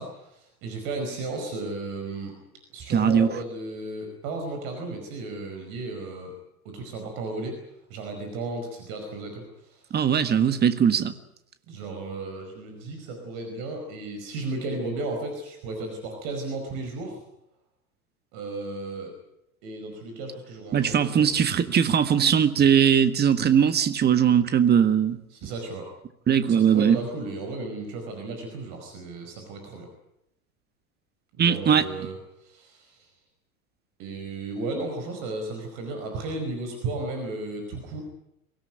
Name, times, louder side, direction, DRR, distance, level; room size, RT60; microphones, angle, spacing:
voice 1, 0.0-2.3 2.7-6.3 6.6-7.6 7.9-9.8 11.7-17.2 18.3-19.1 19.6-21.3 25.3-25.8 26.5-29.9 31.3-32.1 32.4-33.0 34.0-38.0, right 2 dB, 45° right, 4 dB, 5.2 m, -34 dB
voice 2, 2.9-3.3 9.9-11.1 20.7-25.2 26.3-27.0 31.4-31.8, right 8 dB, 20° right, 11 dB, 1.6 m, -20 dB
23.5 x 17.0 x 9.2 m, 0.82 s
figure-of-eight pair, 80°, 44 cm